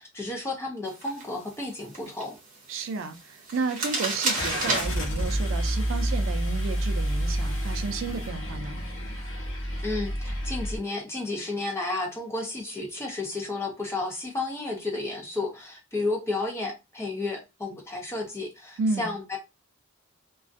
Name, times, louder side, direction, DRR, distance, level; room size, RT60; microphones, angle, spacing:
voice 1, 0.0-2.4 9.8-19.4, left 2 dB, 10° left, 0.5 m, -32 dB
sound 1, 0.8-8.3, right 3 dB, 35° right, 0.9 m, -35 dB
voice 2, 2.7-8.8 18.8-19.1, right 4 dB, 60° right, 0.4 m, -32 dB
Car / Engine starting, 4.3-10.8, equal, 65° left, 0.8 m, -29 dB
2.4 x 2.3 x 2.4 m
head